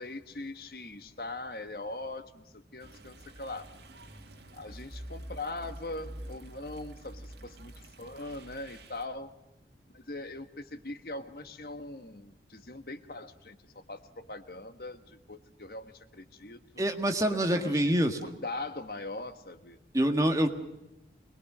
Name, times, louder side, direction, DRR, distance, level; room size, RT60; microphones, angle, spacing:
voice 1, 0.0-3.7 4.5-9.3 9.9-16.6 17.3-19.8, left 2 dB, 55° left, 9 dB, 1.4 m, -41 dB
sound 1, 2.8-9.1, right 1 dB, 80° right, 2.0 m, -47 dB
voice 2, 16.8-18.2 19.9-20.5, right 1 dB, 20° right, 5 dB, 1.7 m, -26 dB
24.5 x 20.5 x 6.2 m, 0.95 s
head